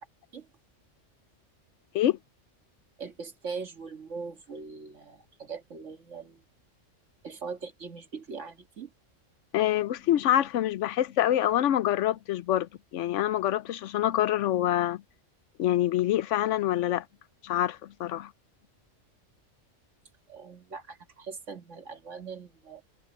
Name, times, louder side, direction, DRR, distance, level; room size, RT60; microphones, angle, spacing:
voice 1, 3.0-6.4 7.2-8.9 20.3-22.8, right 5 dB, 70° right, 2.2 m, -41 dB
voice 2, 9.5-15.0 15.6-17.0 17.4-18.3, left 12 dB, 75° left, 0.9 m, -26 dB
omnidirectional pair, 1.3 m